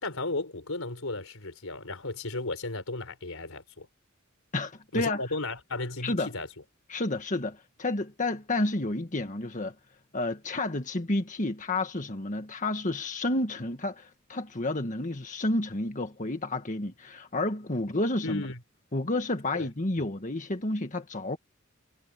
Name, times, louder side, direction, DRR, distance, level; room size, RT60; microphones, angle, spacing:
voice 1, 0.0-3.9 4.9-6.5 18.2-18.6 19.5-19.7, left 2 dB, 85° left, 4.1 m, -34 dB
voice 2, 4.5-5.2 6.0-6.3 6.9-9.7 10.1-18.4 18.9-21.4, left 2 dB, 40° left, 1.7 m, -30 dB
head